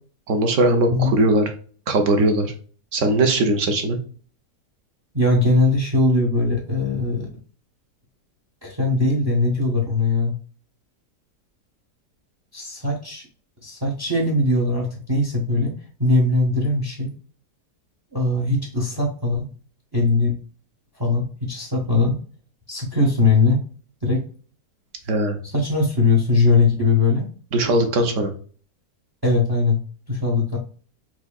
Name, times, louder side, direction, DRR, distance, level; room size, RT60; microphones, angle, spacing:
voice 1, 0.3-1.4 1.9-2.5 2.9-4.0 25.1-25.4 27.5-28.3, right 2 dB, 60° right, 5 dB, 0.9 m, -19 dB
voice 2, 0.9-1.2 5.1-7.3 8.6-10.3 12.5-13.3 13.6-15.7 16.0-17.1 18.1-19.5 19.9-20.4 21.0-22.2 22.7-23.6 24.0-24.3 25.4-27.3 29.2-29.8 30.1-30.6, left 3 dB, 30° right, 1 dB, 0.4 m, -20 dB
4.4 x 2.7 x 2.3 m, 0.43 s
omnidirectional pair, 1.8 m